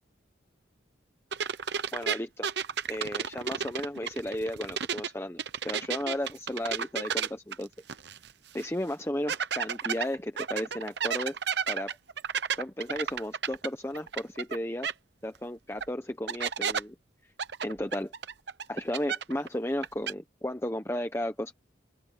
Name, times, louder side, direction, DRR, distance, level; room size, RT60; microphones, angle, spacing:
sound 1, 1.3-5.1 5.4-8.3 8.6-8.7 9.3-14.6 14.8-14.9 15.8-15.9 16.3-16.8 17.4-19.5 19.7-20.1, right 7 dB, 65° right, 0.8 m, -32 dB
voice 1, 1.9-2.5 2.9-7.7 8.5-11.4 11.7-12.0 12.6-14.9 15.2-17.0 17.6-18.1 18.7-21.5, left 1 dB, 15° left, 1.0 m, -34 dB
open air
head